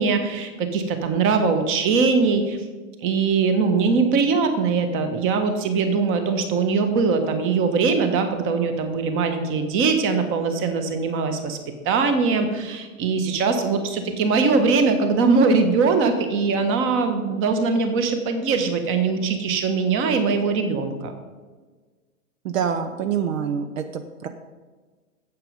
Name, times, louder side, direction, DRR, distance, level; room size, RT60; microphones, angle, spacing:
voice 1, 0.0-2.6 3.0-11.6 11.8-21.1, right 4 dB, 30° right, 7 dB, 1.3 m, -21 dB
voice 2, 22.4-24.3, right 7 dB, 65° right, 8 dB, 0.9 m, -26 dB
8.8 x 7.8 x 5.2 m, 1.4 s
hypercardioid pair, 120°, 42 cm